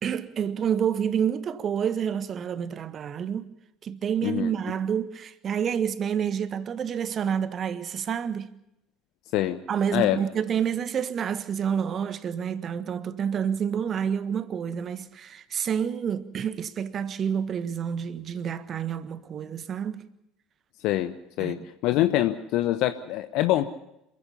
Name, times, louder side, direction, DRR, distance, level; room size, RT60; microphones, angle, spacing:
voice 1, 0.0-3.5 3.8-8.5 9.7-20.1 21.4-21.6, right 8 dB, 40° right, 1.5 m, -28 dB
voice 2, 20.8-23.7, left 14 dB, 60° left, 1.1 m, -25 dB
27.0 x 15.5 x 6.9 m
figure-of-eight pair, 65°, 0 cm